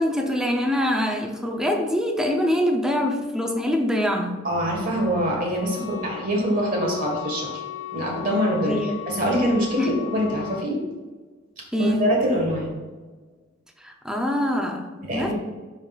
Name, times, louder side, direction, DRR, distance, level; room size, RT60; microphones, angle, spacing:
voice 1, 0.0-4.4 8.6-9.0 9.8-9.9 11.7-12.1 13.8-15.3, left 1 dB, 5° right, 2 dB, 0.6 m, -24 dB
voice 2, 4.4-7.6 7.9-8.7 9.1-9.8 10.1-10.8 11.8-12.8 15.1-15.3, equal, 45° right, -1 dB, 1.6 m, -24 dB
Wind instrument woodwind instrument, 4.9-10.7, left 13 dB, 80° left, 0.7 m, -37 dB
11.0 x 3.9 x 2.4 m, 1.3 s
head